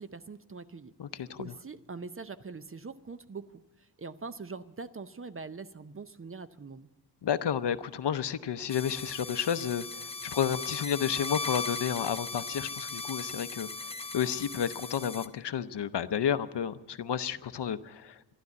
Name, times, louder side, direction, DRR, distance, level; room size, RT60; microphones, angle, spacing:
voice 1, 0.0-6.9, right 4 dB, 30° right, 12 dB, 0.5 m, -43 dB
voice 2, 1.0-1.5 7.2-13.7 14.1-18.3, left 8 dB, 75° left, 13 dB, 0.7 m, -31 dB
sound 1, 8.7-15.3, left 4 dB, 15° left, 0.7 m, -38 dB
12.5 x 11.5 x 9.3 m, 1.2 s
wide cardioid pair, 120°, 42 cm